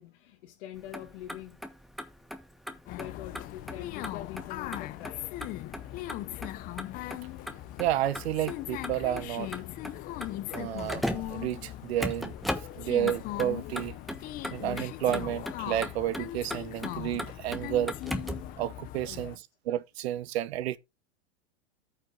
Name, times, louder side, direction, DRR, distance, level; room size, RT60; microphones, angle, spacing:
voice 1, 0.0-1.6 2.7-5.3 19.1-19.4, left 13 dB, 60° left, 1.6 m, -45 dB
Motor vehicle (road), 0.8-18.5, equal, ahead, 1.3 m, -39 dB
sound 1, 2.9-19.4, left 15 dB, 25° left, 0.6 m, -39 dB
voice 2, 7.8-9.5 10.5-12.3 12.8-14.0 14.5-17.9 18.6-20.8, right 12 dB, 65° right, 1.0 m, -31 dB
13.5 x 5.6 x 3.9 m
supercardioid pair, 155°, 34 cm